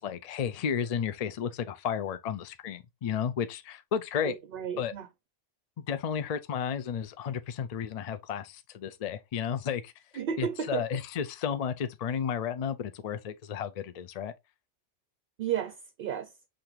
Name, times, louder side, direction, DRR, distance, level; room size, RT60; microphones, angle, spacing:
voice 1, 0.0-4.4 4.8-4.9 5.8-9.9 10.4-14.3, left 7 dB, 60° left, 0.4 m, -33 dB
voice 2, 4.2-5.1 10.1-10.9 15.4-16.3, right 8 dB, 60° right, 0.7 m, -33 dB
5.8 x 2.7 x 3.1 m
omnidirectional pair, 1.2 m